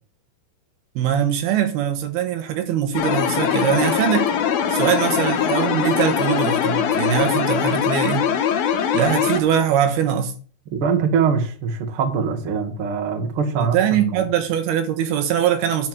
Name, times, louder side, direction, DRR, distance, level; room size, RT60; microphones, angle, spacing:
voice 1, 1.0-4.3 4.7-8.3 8.9-10.3 13.6-15.9, right 9 dB, 75° right, 2.9 m, -22 dB
sound 1, 2.9-9.4, left 8 dB, 70° left, 2.9 m, -21 dB
voice 2, 10.7-14.3, right 6 dB, 55° right, 1.6 m, -23 dB
10.5 x 4.8 x 7.5 m
omnidirectional pair, 4.8 m